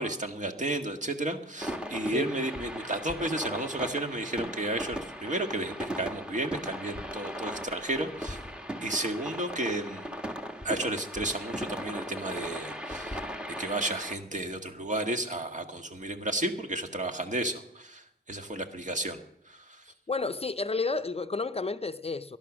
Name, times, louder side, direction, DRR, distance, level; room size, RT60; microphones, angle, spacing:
voice 1, 0.0-8.4 8.8-10.1 10.6-13.2 13.5-19.2 19.5-19.8, right 1 dB, 45° right, 1.6 m, -32 dB
sound 1, 1.6-14.2, equal, 5° right, 1.5 m, -38 dB
voice 2, 20.1-22.4, left 3 dB, 35° left, 0.5 m, -31 dB
19.5 x 11.5 x 6.2 m
wide cardioid pair, 80°, 17 cm